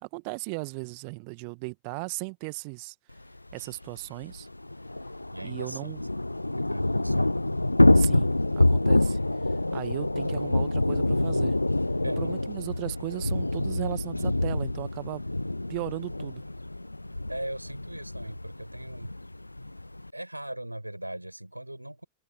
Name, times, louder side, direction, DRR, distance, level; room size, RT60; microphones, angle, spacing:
voice 1, 0.0-2.9 3.5-4.5 5.4-6.0 7.9-9.2 9.7-11.6 12.2-15.2 15.7-16.4, right 37 dB, 45° right, 1.6 m, -36 dB
Thunder / Rain, 3.5-3.6 3.8-3.9 4.2-20.1, left 2 dB, 85° left, 0.4 m, -26 dB
voice 2, 5.3-6.0 6.6-7.4 12.0-12.4 17.3-19.1 20.1-22.0, right 1 dB, 85° right, 7.0 m, -39 dB
figure-of-eight pair, 90°, 0 cm